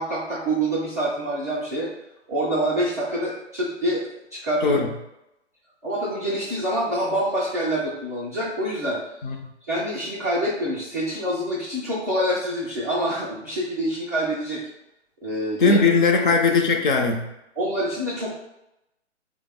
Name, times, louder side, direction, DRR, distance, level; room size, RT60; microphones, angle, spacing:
voice 1, 0.0-1.9 2.3-4.8 5.8-9.0 9.7-14.6 15.2-15.8 16.2-16.4 17.6-18.3, right 1 dB, 15° right, -11 dB, 0.3 m, -26 dB
voice 2, 15.6-17.3, left 4 dB, 45° left, 3 dB, 0.5 m, -19 dB
3.5 x 2.0 x 3.6 m, 0.89 s
figure-of-eight pair, 135°, 36 cm